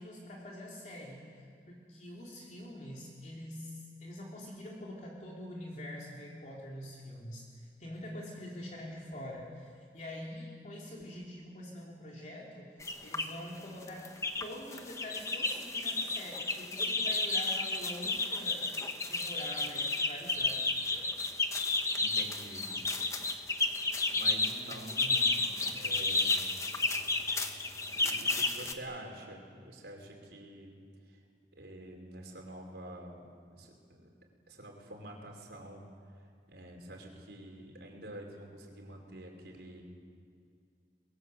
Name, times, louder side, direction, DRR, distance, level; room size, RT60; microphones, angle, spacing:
voice 1, 0.0-14.0 14.4-18.7 19.1-21.1, left 1 dB, 40° left, -3 dB, 3.5 m, -45 dB
sound 1, 12.8-13.3 13.8-14.4 14.7-28.7, left 3 dB, 15° left, 1.3 m, -32 dB
voice 2, 22.0-22.8 24.1-26.4 26.7-26.9 28.0-30.8 31.6-33.3 33.5-33.7 34.0-34.1 34.5-35.8 36.5-39.8, right 1 dB, 70° right, 1 dB, 5.3 m, -47 dB
29.5 x 22.0 x 7.9 m, 2.2 s
head